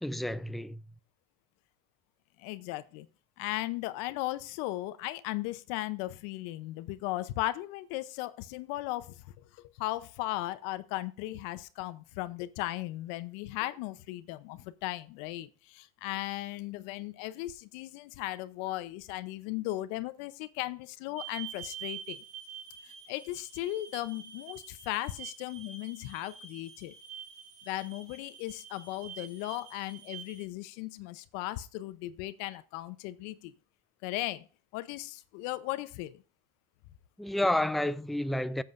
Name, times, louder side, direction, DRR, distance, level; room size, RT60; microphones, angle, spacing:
voice 1, 0.0-0.8 37.2-38.6, left 1 dB, ahead, 0.3 m, -30 dB
voice 2, 2.4-3.1 3.4-9.2 9.8-22.2 22.8-26.9 27.7-33.5 34.0-34.5 34.7-36.2, left 17 dB, 70° left, 0.6 m, -37 dB
sound 1, 21.2-30.4, right 8 dB, 90° right, 2.5 m, -46 dB
15.0 x 7.5 x 2.5 m
supercardioid pair, 130°, 19 cm